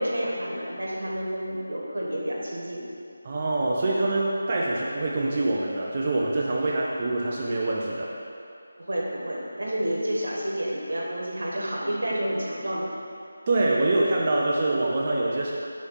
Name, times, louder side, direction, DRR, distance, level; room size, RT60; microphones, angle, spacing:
voice 1, 0.0-2.8 8.8-12.9, equal, 80° right, -3 dB, 1.4 m, -29 dB
voice 2, 3.2-8.1 13.5-15.5, right 2 dB, 30° right, -4 dB, 0.5 m, -25 dB
6.5 x 3.2 x 5.6 m, 2.6 s
figure-of-eight pair, 170°, 0 cm